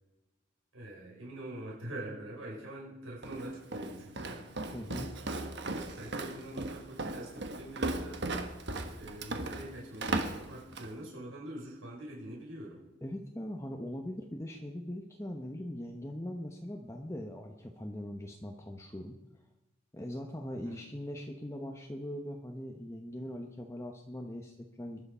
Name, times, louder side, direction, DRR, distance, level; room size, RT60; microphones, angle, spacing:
voice 1, 0.7-4.5 5.9-8.2 9.0-12.8 20.5-20.8, right 1 dB, 80° right, -4 dB, 6.0 m, -44 dB
Walk footsteps, 3.2-11.0, right 2 dB, 55° right, 1.4 m, -37 dB
voice 2, 4.7-5.1 13.0-19.1 19.9-25.1, left 1 dB, 15° left, 3 dB, 1.0 m, -41 dB
22.5 x 11.0 x 5.6 m, 1.1 s
head